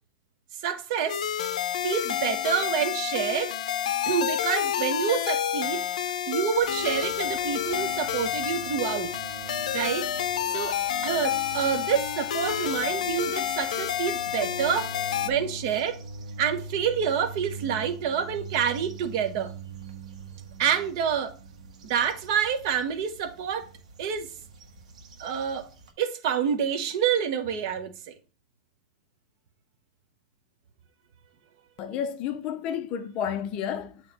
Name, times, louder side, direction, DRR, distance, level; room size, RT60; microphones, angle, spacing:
voice 1, 0.6-1.2 1.8-3.5 4.1-5.8 6.3-9.1 9.7-10.1 10.5-14.9 15.2-16.0 16.4-19.5 20.6-21.3 21.9-23.7 24.0-24.3 25.2-25.7 26.0-28.1, right 8 dB, 35° right, 0.8 m, -27 dB
sound 1, 1.1-15.3, left 10 dB, 90° left, 0.6 m, -29 dB
sound 2, 6.6-25.9, right 3 dB, 85° right, 1.4 m, -43 dB
voice 2, 31.8-34.0, left 8 dB, 25° left, 0.5 m, -31 dB
8.4 x 2.9 x 4.0 m
supercardioid pair, 180°, 4 cm